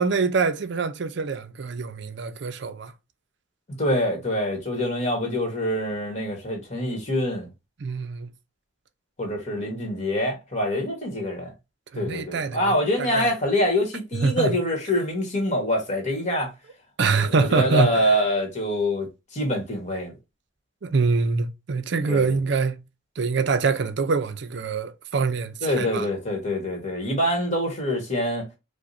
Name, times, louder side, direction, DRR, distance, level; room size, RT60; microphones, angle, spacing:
voice 1, 0.0-2.9 7.8-8.3 11.9-13.3 14.2-14.6 17.0-18.2 20.8-22.8 23.2-26.1, right 4 dB, 60° right, 0.5 m, -25 dB
voice 2, 3.8-7.5 9.2-11.5 11.9-16.5 17.2-19.1 19.3-20.1 22.1-22.3 25.6-28.4, left 1 dB, 35° left, 1.4 m, -25 dB
4.8 x 2.2 x 2.6 m
head